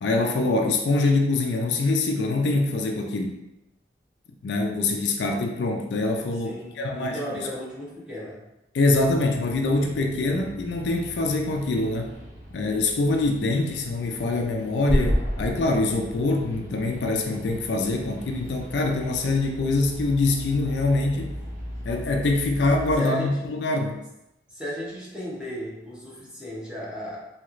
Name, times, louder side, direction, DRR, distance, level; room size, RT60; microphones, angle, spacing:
voice 1, 0.0-3.4 4.4-7.5 8.7-12.2 12.5-21.4 21.8-24.0, left 2 dB, 70° left, 3 dB, 0.4 m, -24 dB
voice 2, 6.4-8.4 23.0-23.5 24.5-27.2, equal, 5° right, -7 dB, 0.8 m, -35 dB
sound 1, 8.9-23.0, equal, 45° right, 1.0 m, -34 dB
3.0 x 2.8 x 2.5 m, 0.91 s
head